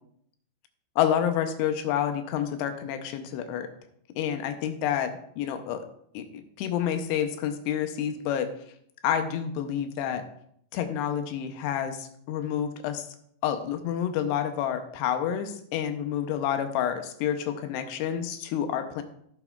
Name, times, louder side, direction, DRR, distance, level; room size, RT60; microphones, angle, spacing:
voice 1, 1.0-3.7 4.2-5.8 6.1-8.5 9.0-10.2 10.7-13.1 13.4-19.0, left 9 dB, 85° left, 7 dB, 2.9 m, -29 dB
16.0 x 7.1 x 2.4 m, 0.68 s
omnidirectional pair, 4.8 m